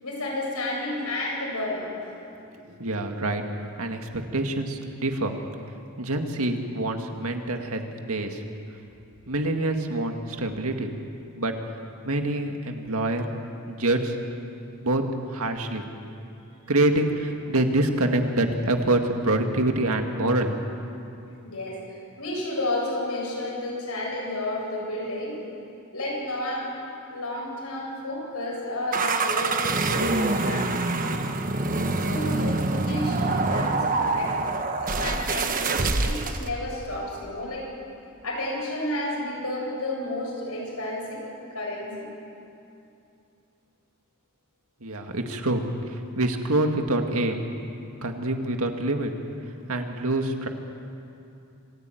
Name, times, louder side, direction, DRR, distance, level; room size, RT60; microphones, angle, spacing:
voice 1, 0.0-2.1 21.4-25.4 25.9-26.7 27.1-31.2 32.0-34.3 34.7-37.6 38.2-41.3 41.5-42.1, left 1 dB, 80° left, -3 dB, 8.0 m, -31 dB
voice 2, 2.6-3.4 3.8-5.3 6.0-8.4 9.3-10.9 11.4-11.5 12.0-13.3 13.7-14.2 14.8-15.0 15.3-15.8 16.7-20.5 44.8-47.4 48.0-49.1 49.7-50.5, right 2 dB, 75° right, 4 dB, 2.0 m, -26 dB
sound 1, 28.9-36.5, right 3 dB, 40° right, 1.1 m, -25 dB
26.0 x 15.5 x 9.3 m, 2.7 s
head